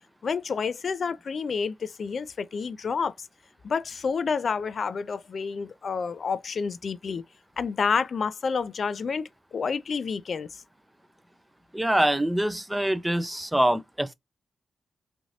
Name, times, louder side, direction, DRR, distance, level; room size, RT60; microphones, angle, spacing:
voice 1, 0.2-3.1 3.6-7.2 7.6-10.6, left 5 dB, 60° left, 0.3 m, -29 dB
voice 2, 11.7-14.1, right 1 dB, 10° right, 0.5 m, -24 dB
3.1 x 2.5 x 2.6 m
cardioid pair, 70°, 0 cm